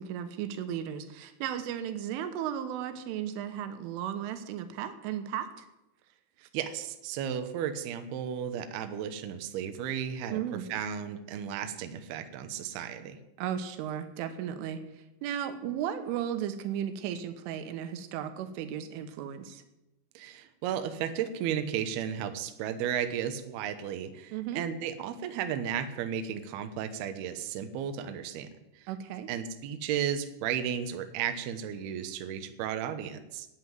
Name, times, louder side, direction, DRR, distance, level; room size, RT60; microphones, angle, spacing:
voice 1, 0.0-5.7 6.4-6.5 10.3-10.7 13.4-19.6 24.3-24.6 28.9-29.3, right 9 dB, 90° right, 9 dB, 3.7 m, -35 dB
voice 2, 6.5-10.4 10.7-13.2 20.1-28.5 28.8-28.9 29.3-33.5, right 9 dB, 70° right, 8 dB, 2.6 m, -34 dB
11.5 x 9.3 x 9.3 m, 0.93 s
omnidirectional pair, 5.5 m